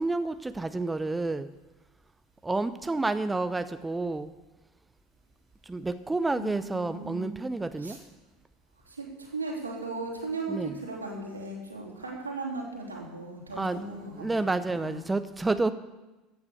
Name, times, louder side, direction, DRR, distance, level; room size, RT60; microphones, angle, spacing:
voice 1, 0.0-1.5 2.4-4.3 5.7-8.0 10.5-10.7 13.6-13.8 14.2-15.7, right 3 dB, 15° right, 12 dB, 0.7 m, -29 dB
voice 2, 6.3-7.4 7.8-8.0 8.9-15.1, right 3 dB, 85° right, -2 dB, 3.4 m, -37 dB
14.5 x 9.6 x 6.9 m, 1.1 s
figure-of-eight pair, 70°, 0 cm